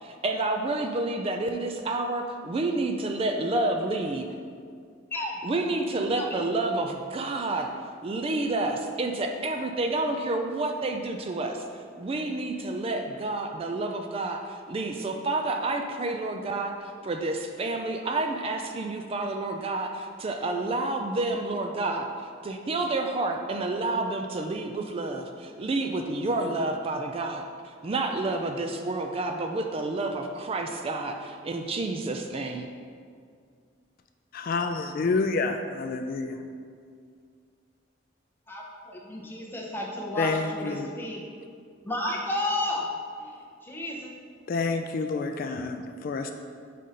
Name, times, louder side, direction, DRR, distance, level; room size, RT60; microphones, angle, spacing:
voice 1, 0.0-4.3 5.4-7.7 8.0-11.6 12.0-22.1 22.4-32.7, right 2 dB, 30° right, 4 dB, 0.4 m, -29 dB
voice 2, 5.1-5.4 6.2-6.4 38.5-41.2 41.8-42.9 43.2-43.3 43.6-44.1, left 1 dB, 10° left, -2 dB, 0.8 m, -32 dB
voice 3, 34.3-36.4 40.2-40.9 44.5-46.3, left 3 dB, 50° left, 6 dB, 0.3 m, -28 dB
5.4 x 4.2 x 5.0 m, 2.2 s
head